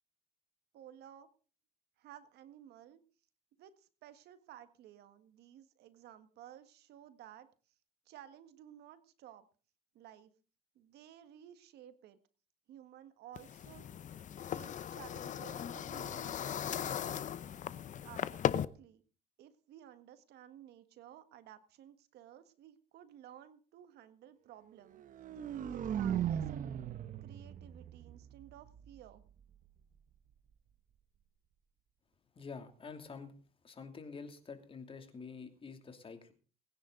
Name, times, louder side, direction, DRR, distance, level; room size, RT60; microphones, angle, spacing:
voice 1, 0.7-1.3 2.0-3.0 3.6-7.5 8.0-9.4 9.9-10.3 10.7-12.2 12.7-13.9 14.5-17.2 18.0-19.0 19.4-25.0 25.7-26.7 27.2-29.2, right 11 dB, 75° right, 11 dB, 1.7 m, -55 dB
sound 1, 13.4-18.6, left 9 dB, 45° left, 0.8 m, -38 dB
sound 2, 24.9-29.0, right 9 dB, 50° right, 1.0 m, -38 dB
voice 2, 32.3-33.3 33.6-36.3, left 5 dB, 30° left, 7 dB, 2.7 m, -48 dB
21.5 x 10.0 x 3.9 m, 0.37 s
cardioid pair, 110°, 17 cm